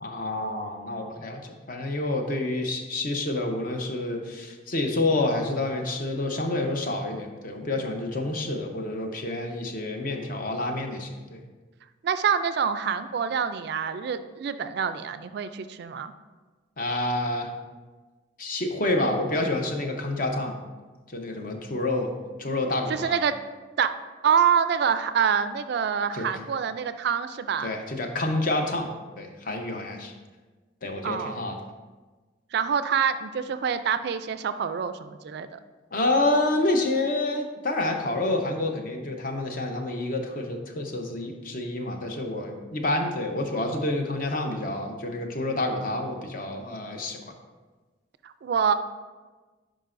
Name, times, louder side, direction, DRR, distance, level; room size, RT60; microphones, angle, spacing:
voice 1, 0.0-11.4 16.8-17.5 18.4-20.6 21.1-22.1 22.4-23.2 26.1-26.3 27.6-28.9 29.2-30.1 30.8-31.6 35.9-47.2, left 2 dB, 50° left, 3 dB, 0.8 m, -28 dB
voice 2, 12.0-16.1 22.9-23.3 23.8-23.9 24.2-27.7 31.0-31.4 32.5-35.6 48.2-48.7, right 7 dB, 60° right, 11 dB, 0.3 m, -26 dB
10.0 x 5.0 x 2.5 m, 1.3 s
head